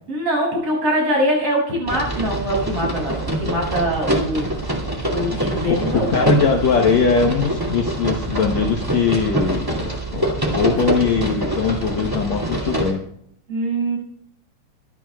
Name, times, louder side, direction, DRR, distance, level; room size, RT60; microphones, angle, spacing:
voice 1, 0.1-4.5 5.1-6.4 13.5-14.0, equal, 35° right, -2 dB, 8.2 m, -23 dB
sound 1, 1.9-12.9, right 1 dB, 10° right, 1.0 m, -24 dB
voice 2, 5.7-13.0, left 5 dB, 85° left, 1 dB, 1.5 m, -21 dB
23.5 x 12.5 x 2.4 m, 0.68 s
omnidirectional pair, 4.7 m